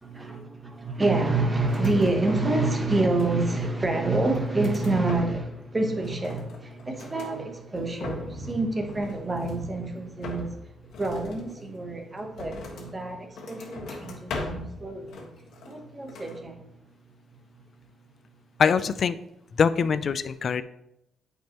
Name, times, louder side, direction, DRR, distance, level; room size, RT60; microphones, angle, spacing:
voice 1, 0.0-16.7, right 2 dB, 20° right, 1.0 m, -27 dB
sound 1, 1.6-2.6 2.9-3.6 4.1-5.6 5.9-7.4 7.8-8.5 8.8-9.7 10.2-13.0 13.3-14.8 15.1-15.8 16.1-16.4, left 3 dB, 75° left, 1.4 m, -40 dB
voice 2, 18.6-19.2 19.5-20.6, left 6 dB, 45° left, 0.3 m, -23 dB
8.9 x 5.3 x 3.0 m
cardioid pair, 140°, 0 cm